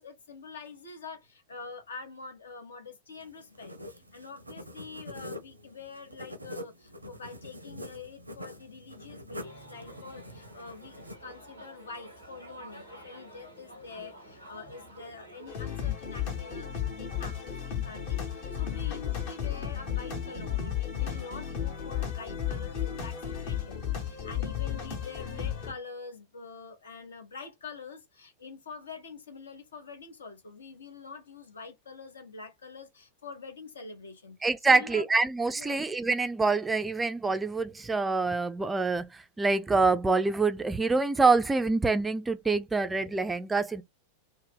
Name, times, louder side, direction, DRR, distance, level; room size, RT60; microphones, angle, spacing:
voice 1, 0.0-34.4 34.6-35.1 35.5-35.8, left 4 dB, 70° left, 0.7 m, -45 dB
sound 1, 3.2-11.2, equal, 85° right, 0.5 m, -45 dB
sound 2, 9.4-15.9, right 1 dB, 90° left, 1.1 m, -50 dB
sound 3, 15.5-25.7, left 9 dB, 50° left, 1.0 m, -33 dB
voice 2, 34.4-43.8, right 3 dB, 10° right, 0.3 m, -26 dB
2.6 x 2.0 x 3.4 m
figure-of-eight pair, 90°, 0 cm